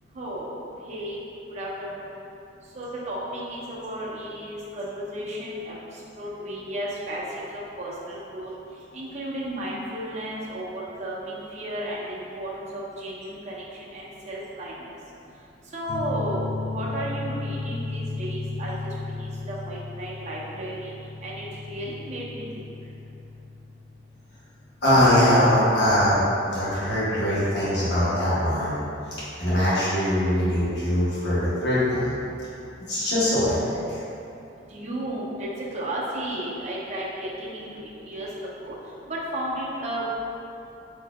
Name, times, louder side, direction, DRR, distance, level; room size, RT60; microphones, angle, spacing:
voice 1, 0.1-0.6 0.8-1.2 1.5-2.2 2.7-7.2 7.5-8.5 8.9-15.0 15.7-20.9 21.2-22.7 34.7-38.3 38.6-38.7 39.1-40.0, right 1 dB, 40° right, -6 dB, 0.6 m, -34 dB
sound 1, 15.9-27.1, left 3 dB, 25° left, 0.4 m, -35 dB
voice 2, 24.8-28.8 29.4-32.2 32.9-34.0, left 1 dB, 65° left, -10 dB, 1.0 m, -22 dB
3.9 x 2.7 x 2.2 m, 2.7 s
head